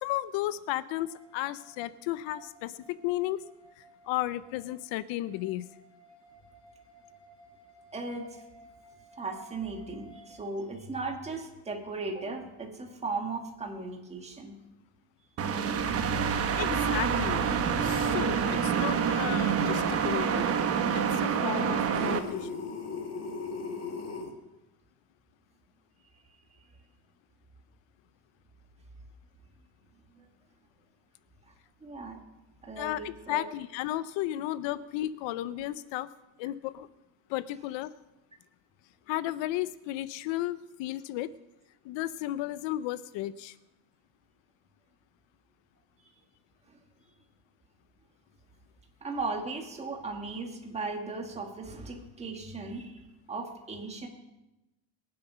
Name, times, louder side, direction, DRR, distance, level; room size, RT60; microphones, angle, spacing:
voice 1, 0.0-3.4 4.1-5.7 16.5-17.4 17.8-20.4 20.9-22.6 32.8-36.1 36.4-36.9 37.3-37.9 39.1-41.3 41.8-43.5, left 15 dB, 75° left, 15 dB, 0.7 m, -34 dB
sound 1, 1.0-10.4, right 2 dB, 10° left, 2.3 m, -57 dB
voice 2, 7.9-8.4 9.2-14.6 30.1-30.3 31.8-32.2 32.6-33.5 46.7-46.8 49.0-53.0 53.3-54.1, right 3 dB, 15° right, 2 dB, 1.7 m, -37 dB
sound 2, 15.4-22.2, right 7 dB, 30° right, 1.0 m, -27 dB
sound 3, 21.9-24.3, left 4 dB, 35° left, 1.6 m, -37 dB
22.0 x 7.8 x 5.6 m, 0.99 s
cardioid pair, 175°, 45 cm